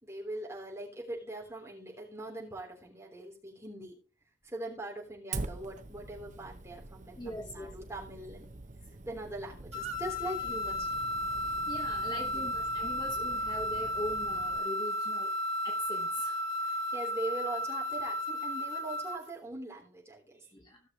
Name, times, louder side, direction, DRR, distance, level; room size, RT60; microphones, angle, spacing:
voice 1, 0.0-4.0 4.4-8.5 9.0-10.9 12.1-12.5 16.6-20.5, right 2 dB, 15° right, -3 dB, 3.4 m, -41 dB
Fire, 5.3-14.6, right 3 dB, 35° right, 0.7 m, -45 dB
voice 2, 7.2-7.7 11.4-15.3 15.6-16.5 20.5-20.8, left 1 dB, 20° left, 3 dB, 1.1 m, -41 dB
sound 1, 9.7-19.3, left 1 dB, 70° right, 1.7 m, -34 dB
16.5 x 6.5 x 3.0 m, 0.33 s
head